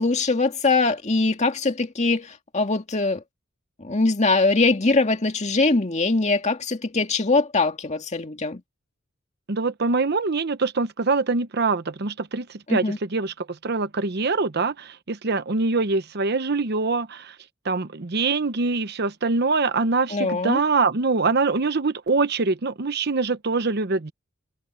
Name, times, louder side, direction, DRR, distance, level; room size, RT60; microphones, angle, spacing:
voice 1, 0.0-3.2 3.8-8.6 12.7-13.0 20.1-20.6, left 3 dB, 35° left, 2.1 m, -22 dB
voice 2, 9.5-17.4 17.6-24.1, right 3 dB, 55° right, 0.9 m, -24 dB
head